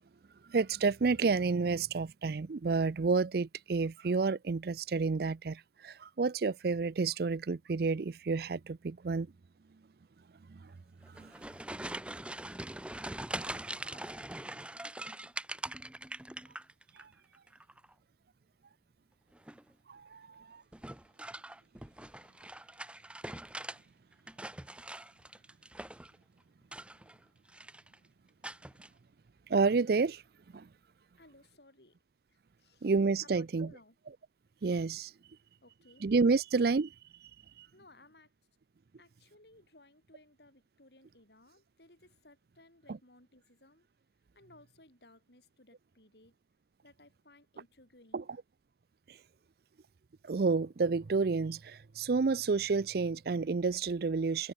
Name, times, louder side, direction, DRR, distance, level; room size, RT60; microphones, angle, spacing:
voice 1, 0.5-9.3 10.5-10.7 11.2-11.3 13.4-13.5 17.0-17.1 19.9-20.6 29.5-30.2 30.5-30.7 32.8-33.7 34.6-35.1 36.0-36.9 37.6-37.7 42.9-43.0 48.1-48.2 49.1-49.2 50.2-54.5, right 4 dB, 55° right, 0.5 m, -30 dB
sound 1, 11.0-17.0 17.3-17.9 19.3-19.7 20.7-23.8 24.1-26.2 26.6-27.2 27.5-28.0 28.4-28.9, right 1 dB, 5° right, 0.7 m, -43 dB
voice 2, 31.2-32.0 32.3-32.9 33.2-34.0 35.6-36.1 37.7-38.3 39.0-43.9 44.3-46.3 46.8-48.4, left 2 dB, 65° left, 7.0 m, -60 dB
head